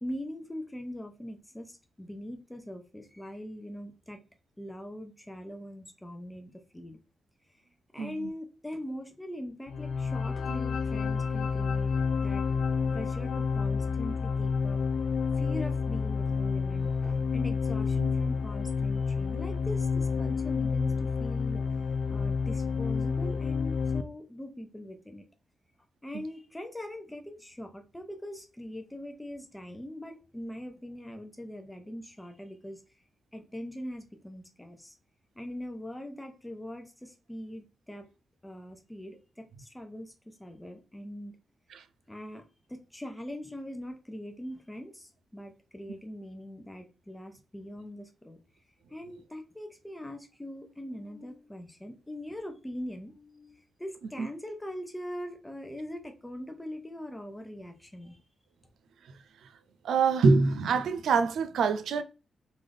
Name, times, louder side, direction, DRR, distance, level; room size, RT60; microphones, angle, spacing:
voice 1, 0.0-4.2 4.6-7.0 7.9-11.9 12.2-12.4 12.9-14.8 15.4-21.6 22.0-25.3 26.0-32.8 33.3-34.9 35.3-38.1 38.4-41.4 42.1-42.4 42.7-48.4 48.9-58.2, equal, 10° left, 0.8 m, -41 dB
sound 1, 9.7-24.0, left 5 dB, 65° left, 0.5 m, -29 dB
voice 2, 59.8-62.0, right 4 dB, 90° right, 0.4 m, -24 dB
3.9 x 3.5 x 3.4 m
wide cardioid pair, 150°, 0 cm